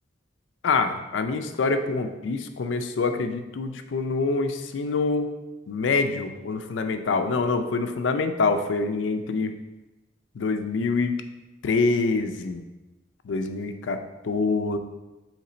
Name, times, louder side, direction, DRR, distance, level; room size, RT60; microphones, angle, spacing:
voice 1, 0.6-5.3 5.7-9.5 10.4-11.2 11.6-12.6 13.2-14.8, left 4 dB, 85° left, 7 dB, 0.4 m, -25 dB
3.8 x 3.2 x 4.2 m, 1.1 s
head